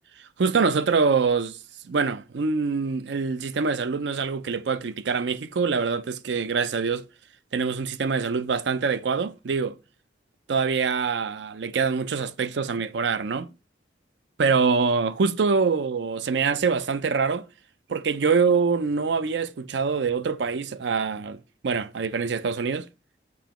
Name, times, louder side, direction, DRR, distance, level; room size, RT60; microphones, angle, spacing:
voice 1, 0.4-1.6 1.9-7.0 7.5-9.8 10.5-13.5 14.4-17.4 17.9-21.4 21.6-22.9, right 5 dB, 75° right, 0.5 m, -24 dB
7.0 x 5.0 x 3.0 m
head